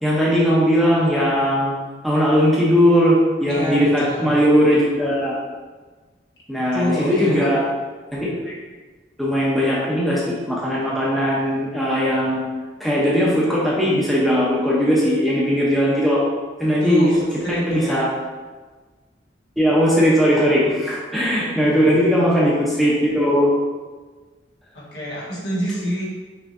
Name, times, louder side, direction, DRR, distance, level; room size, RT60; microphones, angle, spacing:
voice 1, 0.0-1.8 2.0-5.3 6.5-7.6 8.1-8.5 9.2-12.4 12.8-16.2 16.6-17.1 17.5-18.1 19.6-23.5, equal, ahead, -7 dB, 0.8 m, -19 dB
voice 2, 3.5-4.4 6.7-7.4 16.7-18.0 21.6-21.9 24.7-26.1, left 1 dB, 70° left, -6 dB, 1.5 m, -26 dB
5.8 x 3.2 x 2.6 m, 1.3 s
head